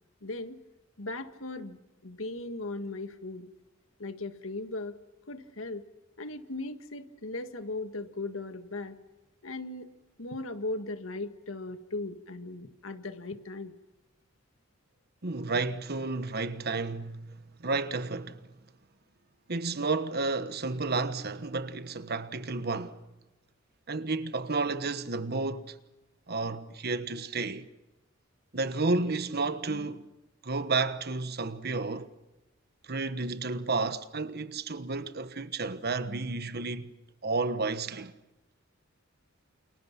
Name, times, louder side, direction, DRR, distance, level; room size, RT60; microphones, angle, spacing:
voice 1, 0.2-0.6 1.0-1.8 2.0-3.5 4.0-5.0 5.3-5.8 6.2-9.0 9.4-9.9 10.2-13.7, left 2 dB, 90° left, 1.8 m, -38 dB
voice 2, 15.2-18.5 19.5-23.0 23.9-25.8 26.3-27.7 28.5-30.1 30.4-32.1 32.8-36.9 37.2-38.1, right 3 dB, 55° right, 1.3 m, -31 dB
29.0 x 29.0 x 5.9 m
head